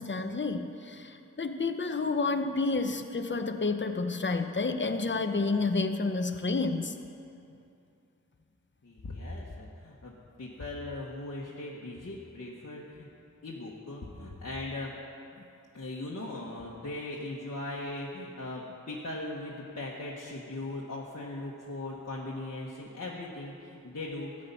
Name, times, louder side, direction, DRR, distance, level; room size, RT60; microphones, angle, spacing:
voice 1, 0.0-6.9, left 3 dB, 35° left, 7 dB, 0.8 m, -30 dB
voice 2, 8.8-10.1 10.4-13.1 13.4-14.9 15.7-24.3, left 2 dB, 55° left, -5 dB, 1.4 m, -39 dB
13.5 x 8.7 x 5.5 m, 2.6 s
cardioid pair, 45°, 32 cm